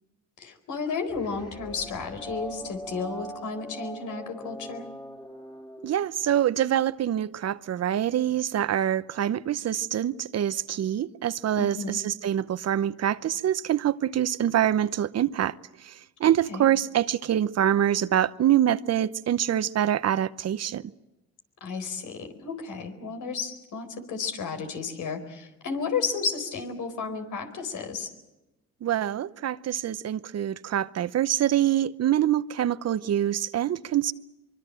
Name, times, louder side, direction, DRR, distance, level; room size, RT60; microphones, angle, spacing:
voice 1, 0.4-4.9 11.6-12.0 16.5-16.7 21.6-28.1, left 5 dB, 75° left, 4.4 m, -33 dB
sound 1, 1.1-6.6, right 1 dB, 15° left, 3.0 m, -41 dB
voice 2, 5.8-20.9 28.8-34.1, right 11 dB, 55° right, 0.9 m, -25 dB
24.0 x 23.5 x 7.6 m
cardioid pair, 90°, 30 cm